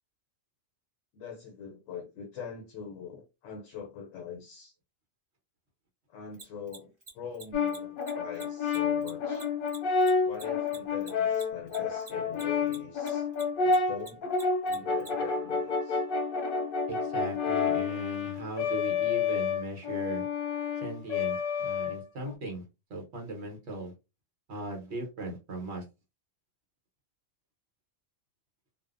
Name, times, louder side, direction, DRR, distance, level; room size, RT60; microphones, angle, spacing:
voice 1, 1.1-4.7 6.1-9.4 10.2-13.3 13.6-14.4 14.7-16.0, left 7 dB, 80° left, 0.9 m, -42 dB
Mechanisms, 6.3-13.1 13.3-15.1, right 3 dB, 35° right, 0.7 m, -46 dB
Brass instrument, 7.5-22.3, left 5 dB, 60° left, 0.6 m, -29 dB
voice 2, 16.9-20.3 20.8-22.6 22.9-23.9 24.5-25.8, right 2 dB, 60° right, 1.2 m, -38 dB
2.6 x 2.1 x 2.4 m
omnidirectional pair, 1.4 m